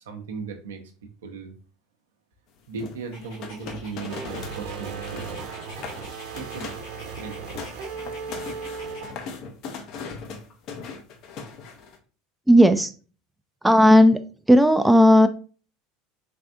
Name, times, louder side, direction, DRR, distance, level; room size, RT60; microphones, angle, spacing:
voice 1, 0.0-1.5 2.7-5.4 5.7-5.8 6.4-6.8 7.1-7.6, right 4 dB, 80° right, 4 dB, 0.6 m, -37 dB
sound 1, 2.8-4.6 4.9-5.4 5.7-6.0 6.4-6.9 7.3-12.0, left 5 dB, 55° left, 0.6 m, -38 dB
Dog, 3.1-9.1, left 1 dB, 70° left, 2.0 m, -47 dB
sound 2, 4.1-9.1, right 5 dB, 60° right, 0.9 m, -36 dB
voice 2, 12.5-12.9 13.6-14.2 14.5-15.3, equal, 5° right, 8 dB, 0.3 m, -14 dB
3.5 x 3.3 x 2.5 m, 0.37 s
hypercardioid pair, 80°, 0 cm